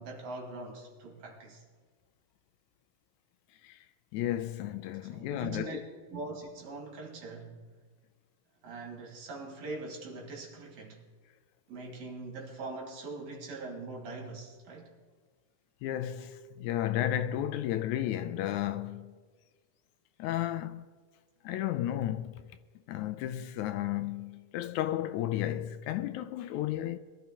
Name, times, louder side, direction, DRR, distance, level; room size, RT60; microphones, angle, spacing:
voice 1, 0.0-1.6 5.0-5.8 6.1-7.7 8.6-11.1 11.7-14.9, right 3 dB, 65° right, 3.1 m, -42 dB
voice 2, 4.1-5.8 15.8-19.1 20.2-20.9 21.4-22.4 22.9-27.0, left 12 dB, 80° left, 1.9 m, -33 dB
22.5 x 12.5 x 2.9 m
omnidirectional pair, 3.5 m